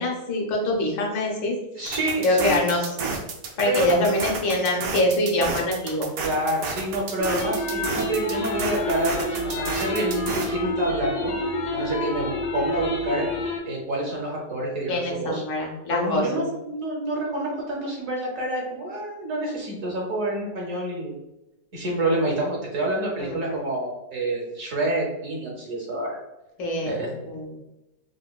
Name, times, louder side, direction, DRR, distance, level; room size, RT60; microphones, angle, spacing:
voice 1, 0.0-1.5 2.2-2.8 3.6-6.1 14.9-16.4 23.2-23.6 26.6-27.5, left 1 dB, 85° left, -1 dB, 1.5 m, -24 dB
voice 2, 1.8-2.6 3.6-4.0 6.2-11.3 11.7-13.3 13.6-15.4 15.9-21.1 21.7-26.2 26.8-27.1, right 1 dB, 60° right, -2 dB, 0.9 m, -28 dB
sound 1, 1.9-10.5, right 4 dB, 75° right, 1.3 m, -31 dB
sound 2, 7.2-13.6, left 1 dB, 70° left, 1.2 m, -28 dB
4.9 x 2.2 x 2.2 m, 0.97 s
omnidirectional pair, 1.9 m